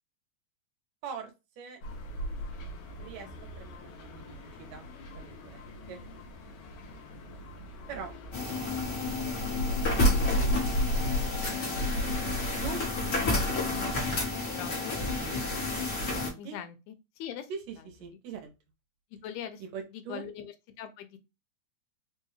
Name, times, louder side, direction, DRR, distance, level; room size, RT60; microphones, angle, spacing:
voice 1, 1.0-1.8 3.0-3.3 3.6-4.8 5.1-6.0 7.9-8.1 8.4-9.7 12.6-12.8 16.1-16.6 17.5-18.5 19.6-20.3, right 6 dB, 75° right, 1.8 m, -43 dB
sound 1, 1.8-13.7, equal, 70° left, 1.5 m, -34 dB
sound 2, 8.3-16.3, left 3 dB, 50° left, 1.1 m, -31 dB
voice 2, 14.5-15.0 16.4-17.5 19.1-19.6 19.9-21.2, left 9 dB, 85° left, 2.0 m, -41 dB
4.6 x 2.3 x 3.1 m
omnidirectional pair, 3.4 m